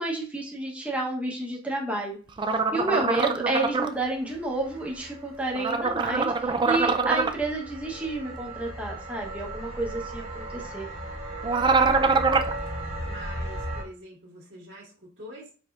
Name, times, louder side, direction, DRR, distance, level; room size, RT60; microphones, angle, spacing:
voice 1, 0.0-2.2 2.7-10.9, right 2 dB, 5° right, -2 dB, 0.9 m, -30 dB
sound 1, 2.4-3.9 5.6-7.3 11.4-12.5, right 4 dB, 25° right, 0.3 m, -24 dB
sound 2, 3.3-13.8, right 1 dB, 75° right, 1.6 m, -37 dB
voice 2, 13.0-15.5, equal, 60° right, -6 dB, 1.7 m, -44 dB
5.1 x 4.3 x 2.4 m, 0.38 s
head